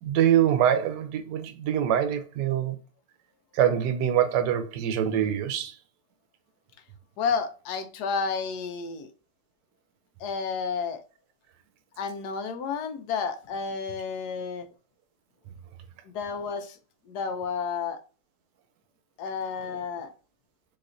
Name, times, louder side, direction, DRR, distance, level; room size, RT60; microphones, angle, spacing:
voice 1, 0.0-2.8 3.6-5.7, right 10 dB, 75° right, 1.2 m, -24 dB
voice 2, 7.2-9.1 10.2-11.0 12.0-14.7 16.0-16.8 17.1-18.0 19.2-20.1, left 5 dB, 70° left, 1.1 m, -31 dB
4.1 x 2.9 x 2.5 m
omnidirectional pair, 2.0 m